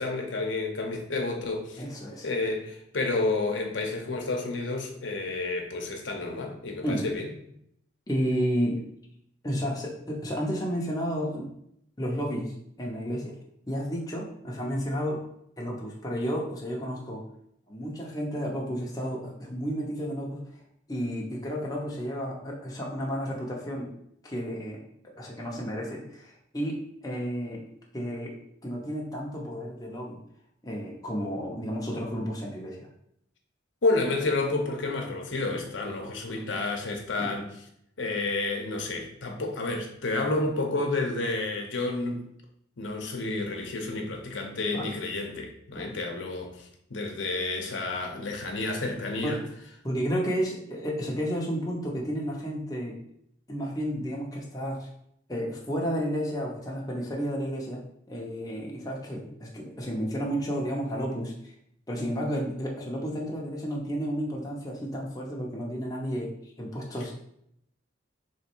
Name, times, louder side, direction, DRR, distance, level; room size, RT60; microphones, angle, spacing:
voice 1, 0.0-1.8 2.2-7.3 33.8-37.5 38.0-42.2 42.8-49.4, left 3 dB, 75° left, 2 dB, 0.8 m, -30 dB
voice 2, 1.8-2.3 6.8-7.1 8.1-8.8 9.4-11.5 12.0-12.5 12.8-13.3 13.7-15.3 15.6-17.2 17.7-20.4 20.9-23.9 24.2-24.8 25.2-27.6 27.9-30.2 30.6-32.9 37.2-37.3 44.7-44.9 45.8-45.9 49.2-49.5 49.8-53.0 53.5-54.9 55.3-61.5 61.9-66.3 66.6-67.1, equal, 20° left, -2 dB, 0.7 m, -32 dB
3.6 x 3.1 x 4.4 m, 0.73 s
head